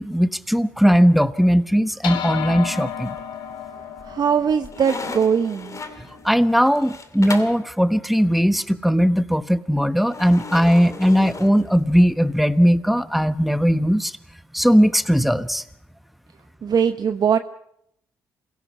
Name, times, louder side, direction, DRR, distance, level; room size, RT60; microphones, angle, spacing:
voice 1, 0.0-3.1 6.2-14.1 14.5-15.6, equal, ahead, 13 dB, 1.2 m, -18 dB
sound 1, 2.0-6.7, left 9 dB, 75° left, 1.9 m, -33 dB
sound 2, 3.0-3.6 4.0-7.7 10.1-12.2, left 4 dB, 40° left, 2.6 m, -36 dB
voice 2, 4.1-5.8 16.6-17.4, right 7 dB, 55° right, 8 dB, 1.0 m, -20 dB
27.5 x 17.0 x 5.6 m, 0.71 s
hypercardioid pair, 45°, 8 cm